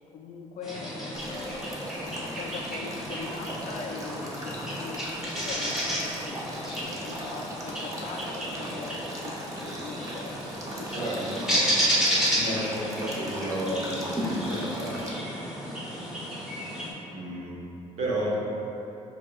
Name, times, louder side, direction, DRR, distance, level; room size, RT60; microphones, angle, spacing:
voice 1, 0.1-10.4 10.7-11.1, left 5 dB, 70° left, 2 dB, 0.5 m, -42 dB
sound 1, 0.6-16.9, equal, 5° right, 1.1 m, -32 dB
Male speech man speaking / Stream / Trickle dribble, 1.1-15.1, right 1 dB, 25° right, 0.7 m, -40 dB
voice 2, 10.9-11.8 12.3-15.0 17.1-17.6 18.0-18.4, right 1 dB, 65° right, -4 dB, 1.1 m, -32 dB
7.3 x 2.8 x 2.5 m, 2.8 s
cardioid pair, 100°, 13 cm